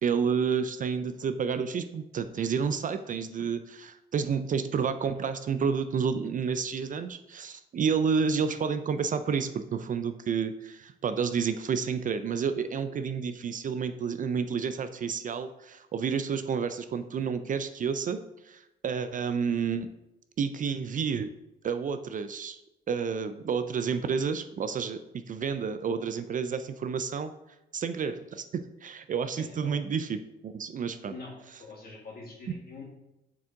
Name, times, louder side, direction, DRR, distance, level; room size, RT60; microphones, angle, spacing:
voice 1, 0.0-19.9 20.4-21.3 21.6-22.6 22.9-27.3 27.7-31.2, right 6 dB, 40° right, 10 dB, 0.4 m, -30 dB
voice 2, 29.3-29.7 31.1-31.3 31.6-32.8, left 3 dB, 50° left, -3 dB, 2.2 m, -44 dB
6.1 x 4.5 x 3.6 m, 0.91 s
cardioid pair, 90°, 20 cm